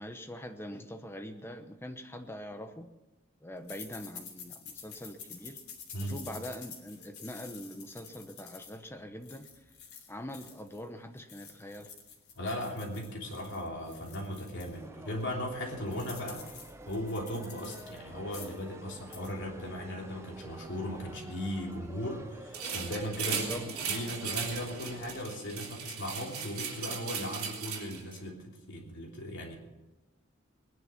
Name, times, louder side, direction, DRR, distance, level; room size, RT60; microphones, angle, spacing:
voice 1, 0.0-2.9 3.4-5.6 6.0-9.5 10.1-11.9 23.2-23.6, equal, 10° left, 7 dB, 0.9 m, -43 dB
sound 1, 3.7-10.8 11.2-14.8 15.2-15.3 15.5-18.0 18.2-18.7 19.0-19.3, left 6 dB, 85° left, 3.1 m, -49 dB
voice 2, 12.3-16.5 16.9-29.5, equal, 55° left, 0 dB, 3.2 m, -37 dB
sound 2, 14.7-25.2, right 1 dB, 10° right, 0.7 m, -50 dB
sound 3, 22.5-28.2, right 6 dB, 80° right, 3.2 m, -37 dB
20.0 x 10.5 x 5.8 m, 1.1 s
head